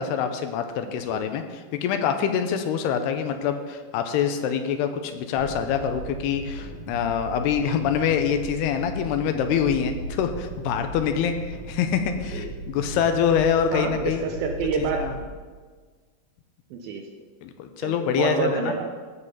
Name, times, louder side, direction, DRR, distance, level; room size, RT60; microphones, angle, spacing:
voice 1, 0.0-14.2 14.9-15.2 17.4-18.7, left 8 dB, 80° left, 7 dB, 2.5 m, -25 dB
sound 1, 5.3-15.2, right 2 dB, 60° right, 1.8 m, -36 dB
voice 2, 13.7-15.1 16.7-17.0 17.8-18.8, right 5 dB, 90° right, 3 dB, 2.1 m, -28 dB
14.5 x 5.5 x 7.2 m, 1.5 s
omnidirectional pair, 5.2 m